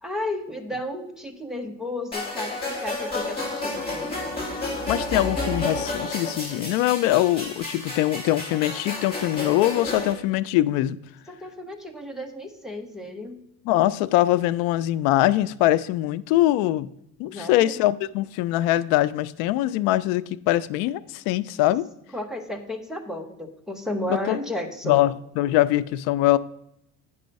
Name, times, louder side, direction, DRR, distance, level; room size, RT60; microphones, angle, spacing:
voice 1, 0.0-4.1 11.3-13.4 17.3-17.8 22.1-25.0, left 1 dB, ahead, 0.7 m, -33 dB
sound 1, 2.1-10.1, left 2 dB, 15° left, 2.7 m, -31 dB
voice 2, 4.9-11.0 13.7-16.9 17.2-21.9 24.1-24.4 24.8-26.4, left 15 dB, 85° left, 0.5 m, -22 dB
9.6 x 5.5 x 5.2 m
cardioid pair, 165°, 34 cm